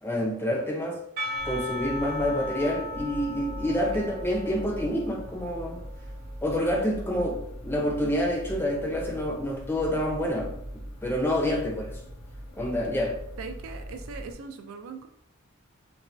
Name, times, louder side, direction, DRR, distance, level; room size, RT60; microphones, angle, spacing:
voice 1, 0.0-1.0 1.4-5.8 6.4-10.6 11.0-12.0 12.6-13.2, equal, 10° left, -1 dB, 0.4 m, -28 dB
Percussion / Church bell, 1.2-6.4, left 1 dB, 45° right, 0.9 m, -37 dB
sound 1, 1.4-14.3, equal, 70° left, 0.7 m, -41 dB
voice 2, 13.4-15.1, right 4 dB, 85° right, 7 dB, 0.4 m, -40 dB
2.6 x 2.1 x 3.2 m, 0.73 s
head